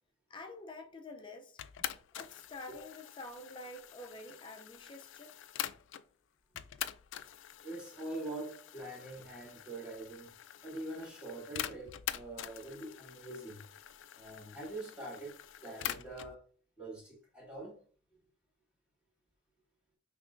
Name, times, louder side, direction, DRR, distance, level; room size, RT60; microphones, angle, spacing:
voice 1, 0.3-1.6 2.1-5.4, left 2 dB, 25° left, 0.5 m, -48 dB
sound 1, 1.6-6.1 6.6-16.3, left 11 dB, 85° left, 0.3 m, -45 dB
voice 2, 7.6-10.3 10.6-13.6 14.1-15.3 15.6-16.4 16.8-17.8, right 2 dB, 5° right, 1.7 m, -44 dB
5.7 x 3.2 x 2.5 m
head